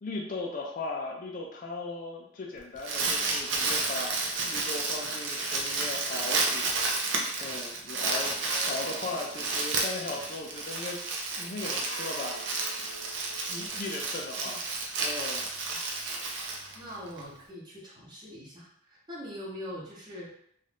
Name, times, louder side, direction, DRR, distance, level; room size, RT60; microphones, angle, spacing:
voice 1, 0.0-8.4 8.7-11.0 11.4-12.5 13.5-14.7 15.0-15.5, left 3 dB, 45° left, 0 dB, 0.4 m, -38 dB
Crumpling crinkling, 2.6-17.2, right 3 dB, 65° right, 0.5 m, -31 dB
sound 1, 4.2-7.5 8.4-10.9 11.8-13.7, right 1 dB, 80° left, 0.7 m, -50 dB
voice 2, 16.7-20.3, equal, 20° right, -6 dB, 0.9 m, -42 dB
2.6 x 2.3 x 3.4 m, 0.67 s
head